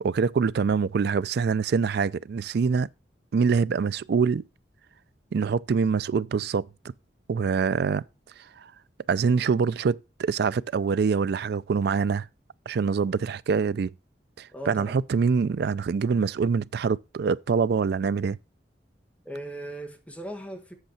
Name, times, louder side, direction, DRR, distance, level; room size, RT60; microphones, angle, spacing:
voice 1, 0.0-2.9 3.3-4.4 5.3-6.7 7.3-8.0 9.1-12.3 12.7-13.9 14.4-18.4, right 5 dB, 60° right, 0.4 m, -25 dB
voice 2, 14.5-15.0 19.2-20.7, right 1 dB, 10° left, 1.5 m, -38 dB
8.0 x 6.6 x 4.2 m
head